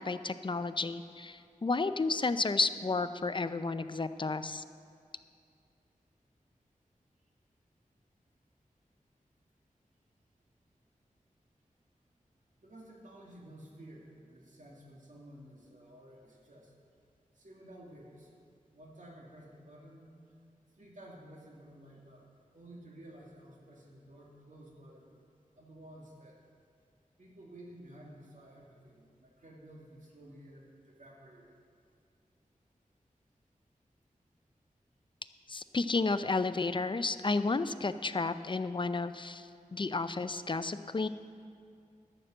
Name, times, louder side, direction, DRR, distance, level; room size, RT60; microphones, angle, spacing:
voice 1, 0.0-4.6 35.5-41.1, left 3 dB, 35° left, 12 dB, 0.5 m, -32 dB
voice 2, 12.6-16.7 17.3-18.3 18.7-20.1 20.7-22.3 22.5-25.2 25.6-26.4 27.2-31.6, right 1 dB, 65° right, -2 dB, 2.3 m, -53 dB
11.5 x 6.7 x 7.7 m, 2.4 s
cardioid pair, 50°, 14 cm